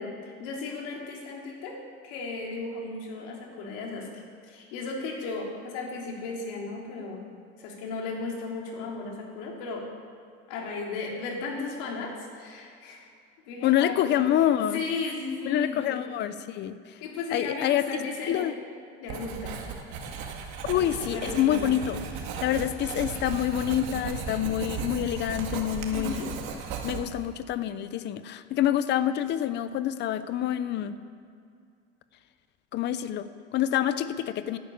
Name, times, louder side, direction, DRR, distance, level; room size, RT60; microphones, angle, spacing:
voice 1, 0.0-1.8 2.0-7.2 7.6-9.8 10.5-13.1 13.4-14.2 14.7-16.0 17.0-18.5 19.0-19.6 20.8-21.7 25.9-26.3, left 3 dB, 85° left, -1 dB, 3.5 m, -35 dB
voice 2, 13.6-14.8 15.5-17.0 17.3-17.8 18.3-18.5 20.7-26.2 26.8-30.9 32.7-34.6, left 11 dB, 35° left, 12 dB, 0.7 m, -27 dB
Writing, 19.1-27.3, right 5 dB, 80° right, 2.2 m, -36 dB
12.0 x 11.0 x 8.8 m, 2.4 s
cardioid pair, 165°, 29 cm